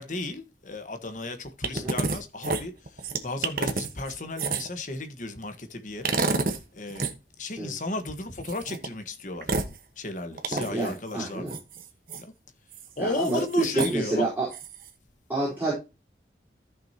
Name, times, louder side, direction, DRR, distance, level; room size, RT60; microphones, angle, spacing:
voice 1, 0.0-2.7 3.2-6.1 6.7-7.1 7.4-9.5 10.0-11.5 12.1-12.2 13.0-14.3, left 2 dB, 45° left, 1.5 m, -34 dB
sound 1, 1.6-2.2 2.4-4.8 6.0-6.6 6.9-7.1 8.4-8.9 9.4-9.7 10.4-10.9 11.5-12.2 12.7-12.9 13.2-13.9 14.5-14.9, right 3 dB, 50° right, 1.3 m, -29 dB
voice 2, 10.5-11.6 13.0-14.5 15.3-15.7, right 2 dB, 10° right, 4.4 m, -28 dB
14.0 x 6.2 x 2.9 m
head